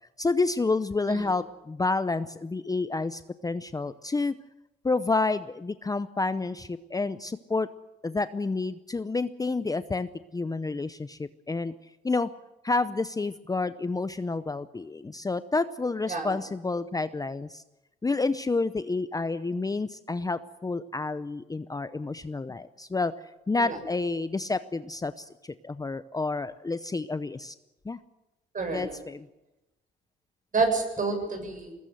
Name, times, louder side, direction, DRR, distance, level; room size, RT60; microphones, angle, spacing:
voice 1, 0.2-4.4 4.8-7.7 8.0-11.7 12.0-12.3 12.6-17.6 18.0-23.1 23.5-27.5 27.8-28.0 28.7-29.3, left 3 dB, 20° left, 13 dB, 0.7 m, -29 dB
voice 2, 28.5-28.9 30.5-31.7, right 4 dB, 40° right, 4 dB, 7.6 m, -28 dB
22.0 x 20.0 x 7.9 m, 1.0 s
cardioid pair, 90°, 20 cm